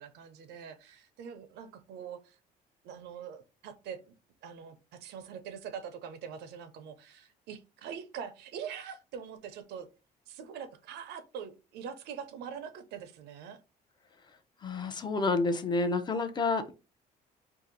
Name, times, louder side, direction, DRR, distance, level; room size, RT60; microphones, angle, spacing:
voice 1, 0.0-2.4 2.8-4.1 4.4-9.9 10.3-13.6, right 7 dB, 80° right, 0.7 m, -43 dB
voice 2, 14.6-16.7, left 3 dB, 25° left, 0.5 m, -29 dB
2.7 x 2.5 x 3.8 m
cardioid pair, 110°, 17 cm